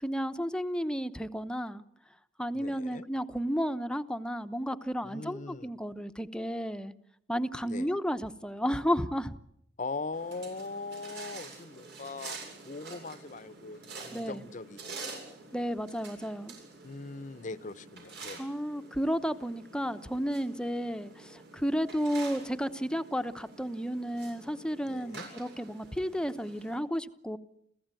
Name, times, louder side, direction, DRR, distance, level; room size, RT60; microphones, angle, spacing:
voice 1, 0.0-1.8 2.4-6.9 7.3-9.3 14.1-14.5 15.5-16.5 18.4-27.4, equal, 5° left, 10 dB, 0.9 m, -32 dB
voice 2, 2.5-3.1 5.0-5.7 7.7-7.9 9.8-12.4 12.6-15.0 16.8-18.4 24.9-25.3, left 3 dB, 45° left, 16 dB, 0.8 m, -40 dB
sound 1, 10.1-26.8, right 4 dB, 75° right, 7.8 m, -48 dB
28.0 x 15.5 x 9.1 m, 0.73 s
head